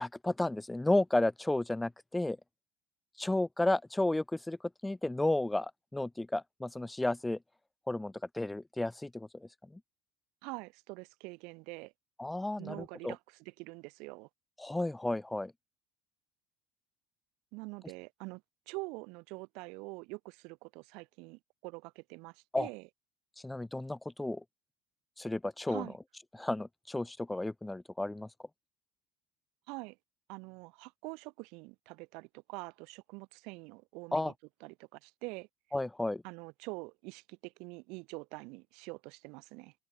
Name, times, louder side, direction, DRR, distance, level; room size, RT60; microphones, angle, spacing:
voice 1, 0.0-2.4 3.2-4.6 4.8-7.4 7.9-9.3 12.2-13.1 14.6-15.5 22.5-22.7 23.4-24.4 25.2-25.9 26.3-28.3 34.1-34.3 35.7-36.2, left 2 dB, 10° left, 0.3 m, -32 dB
voice 2, 10.4-11.9 12.6-14.3 17.5-22.9 25.7-25.9 29.7-30.0 30.3-34.3 34.6-35.5 36.2-39.7, right 28 dB, 70° right, 2.8 m, -45 dB
open air
hypercardioid pair, 80°, 0 cm